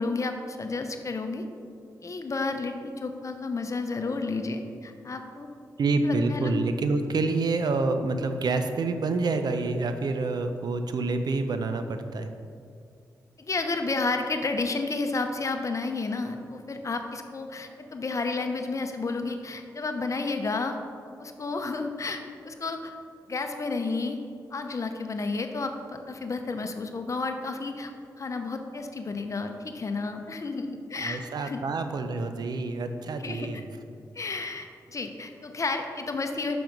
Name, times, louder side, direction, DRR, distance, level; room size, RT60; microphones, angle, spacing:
voice 1, 0.0-1.5 2.0-5.5 6.1-6.5 13.4-20.8 21.2-22.2 22.5-22.9 23.3-24.2 24.5-27.9 28.2-31.6 33.2-33.5 34.1-36.6, left 3 dB, 45° left, 6 dB, 0.7 m, -31 dB
voice 2, 5.8-12.3 30.9-33.7, right 3 dB, 65° right, 8 dB, 0.6 m, -27 dB
6.1 x 5.9 x 5.2 m, 2.3 s
cardioid pair, 65°, 7 cm